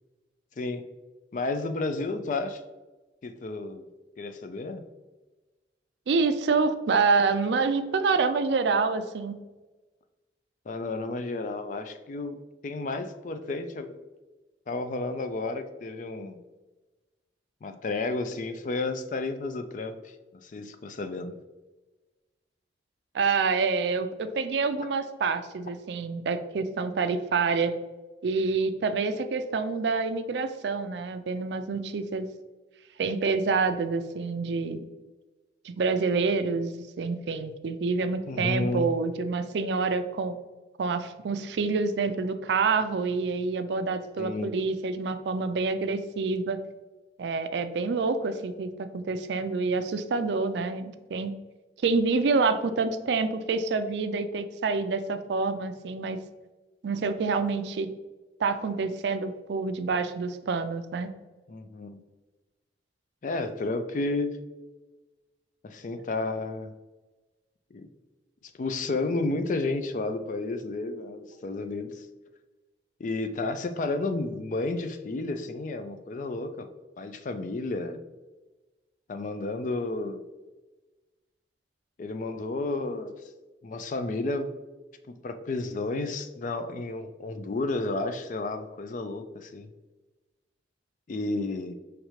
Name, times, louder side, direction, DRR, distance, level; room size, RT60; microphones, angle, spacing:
voice 1, 1.3-2.6 3.2-3.9 4.2-4.8 10.7-14.0 14.7-16.4 17.6-20.0 20.4-21.4 38.3-38.9 44.2-44.6 61.5-62.0 63.2-64.4 65.6-66.7 67.7-67.9 68.6-72.0 73.0-76.7 77.0-78.0 79.1-80.2 82.0-83.2 83.6-84.6 85.1-89.7 91.1-91.7, left 2 dB, 45° left, 8 dB, 0.4 m, -32 dB
voice 2, 6.1-9.4 23.1-27.7 28.2-32.3 33.0-34.8 35.6-40.3 40.8-46.6 47.2-51.3 51.8-56.2 56.8-57.9 58.4-61.1, right 4 dB, 70° right, 9 dB, 0.4 m, -27 dB
5.0 x 3.2 x 3.1 m, 1.2 s
head